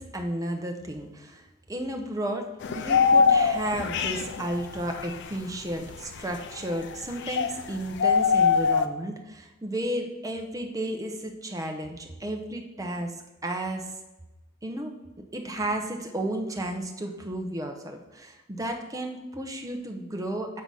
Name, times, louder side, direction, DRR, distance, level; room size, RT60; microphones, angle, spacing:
voice 1, 0.0-13.2 13.4-13.9 14.6-14.9 15.3-20.6, right 1 dB, 15° right, 3 dB, 0.8 m, -33 dB
sound 1, 2.6-7.7 8.0-8.9, left 5 dB, 60° left, 0.4 m, -23 dB
7.4 x 3.9 x 5.5 m, 1.0 s
head